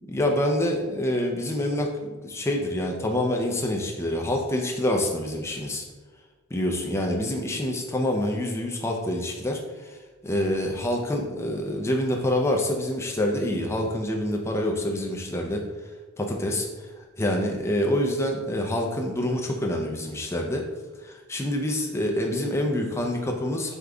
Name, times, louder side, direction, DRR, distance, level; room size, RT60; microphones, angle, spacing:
voice 1, 0.0-5.8 6.5-9.9 10.2-15.6 16.2-16.7 17.2-20.7 21.0-23.7, left 1 dB, 10° left, 1 dB, 0.4 m, -26 dB
5.1 x 3.6 x 2.3 m, 1.3 s
head